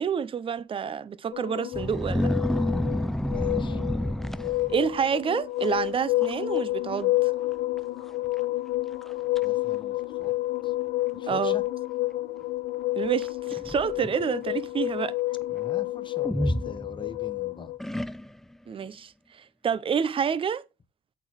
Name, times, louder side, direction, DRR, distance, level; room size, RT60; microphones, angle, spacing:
voice 1, 0.0-2.3 4.7-7.3 11.3-11.6 13.0-15.1 18.7-20.6, right 7 dB, 30° right, 0.6 m, -28 dB
sound 1, 1.3-17.8, left 18 dB, 85° left, 1.5 m, -30 dB
sound 2, 1.7-5.0 5.6-5.9 6.2-6.6 6.9-7.0 7.8-7.9 8.4-8.5 9.0-9.4 10.3-10.4 13.2-14.2 16.2-17.3 17.8-18.5, left 1 dB, ahead, 0.3 m, -29 dB
voice 2, 3.2-3.8 4.4-4.6 9.4-10.3 10.6-10.7 11.1-11.6 15.5-17.7, left 5 dB, 30° left, 1.0 m, -43 dB
8.3 x 4.0 x 6.1 m
cardioid pair, 110°, 17 cm